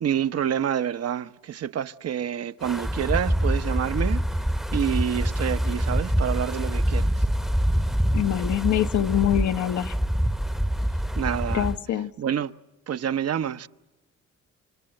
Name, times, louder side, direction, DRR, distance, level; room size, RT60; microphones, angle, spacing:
voice 1, 0.0-4.2 4.7-7.1 11.2-11.7 12.2-12.5 12.9-13.7, right 9 dB, 55° right, 0.9 m, -27 dB
Wind, 2.6-11.8, equal, ahead, 0.9 m, -25 dB
voice 2, 8.1-9.9 11.5-12.1, left 11 dB, 70° left, 1.0 m, -24 dB
28.5 x 26.5 x 7.8 m
cardioid pair, 90°, 30 cm